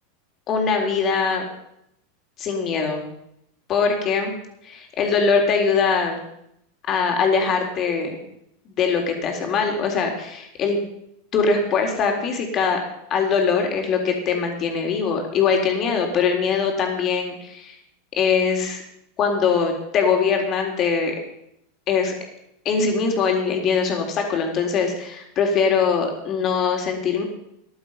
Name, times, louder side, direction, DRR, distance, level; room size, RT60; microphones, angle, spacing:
voice 1, 0.5-1.5 2.4-3.0 3.7-4.3 4.6-6.2 6.9-8.2 8.7-10.8 11.3-12.8 13.1-17.8 18.2-18.8 19.2-21.2 21.9-22.1 22.7-27.2, left 5 dB, 40° left, 3 dB, 3.6 m, -22 dB
14.5 x 11.0 x 5.6 m, 0.77 s
hypercardioid pair, 95°, 0 cm